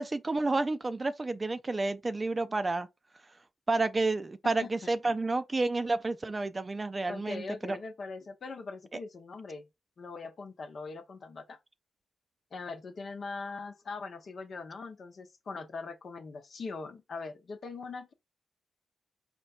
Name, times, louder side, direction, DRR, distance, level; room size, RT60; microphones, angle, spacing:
voice 1, 0.0-2.9 3.7-7.8, right 3 dB, 35° right, 0.5 m, -30 dB
voice 2, 4.4-4.9 7.1-9.7 10.0-11.6 12.5-18.1, left 4 dB, 60° left, 0.8 m, -41 dB
4.3 x 2.2 x 4.3 m
hypercardioid pair, 40°, 0 cm